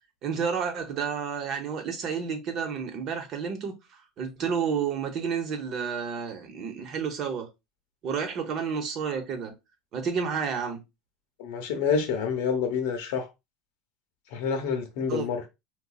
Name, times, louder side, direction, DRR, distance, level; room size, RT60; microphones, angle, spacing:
voice 1, 0.2-3.8 4.2-7.5 8.0-9.5 9.9-10.8 15.1-15.3, right 6 dB, 50° right, 0.9 m, -30 dB
voice 2, 11.4-13.3 14.3-15.4, left 6 dB, 75° left, 0.8 m, -28 dB
4.0 x 2.3 x 2.3 m
supercardioid pair, 105°, 0 cm